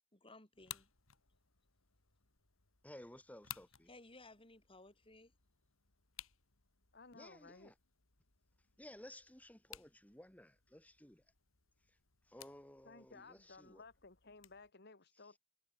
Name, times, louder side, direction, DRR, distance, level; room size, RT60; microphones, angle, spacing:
voice 1, 0.2-0.9 3.9-5.3, left 2 dB, 25° left, 6.8 m, -59 dB
sound 1, 0.5-14.7, left 12 dB, 90° left, 3.2 m, -58 dB
voice 2, 2.8-3.9 7.1-7.7 8.8-11.2 12.3-13.8, left 1 dB, 5° left, 2.0 m, -56 dB
voice 3, 6.9-7.7 12.9-15.4, left 3 dB, 55° left, 2.1 m, -57 dB
head